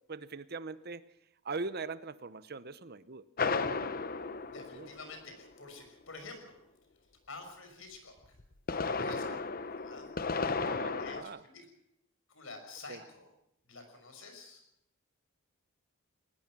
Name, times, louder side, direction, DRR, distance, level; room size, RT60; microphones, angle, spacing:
voice 1, 0.1-1.1 1.4-3.2 3.5-4.0 4.7-4.9 9.1-9.4 10.5-11.4 12.9-13.0, right 4 dB, 45° right, 14 dB, 0.8 m, -42 dB
sound 1, 3.4-5.5 8.4-11.2, left 4 dB, 40° left, 0.9 m, -34 dB
voice 2, 4.5-6.5 7.3-8.4 8.7-9.2 9.7-10.1 11.0-11.7 12.3-13.3 13.7-14.6, left 3 dB, 65° left, 6 dB, 5.9 m, -49 dB
21.5 x 19.5 x 6.2 m, 0.84 s
head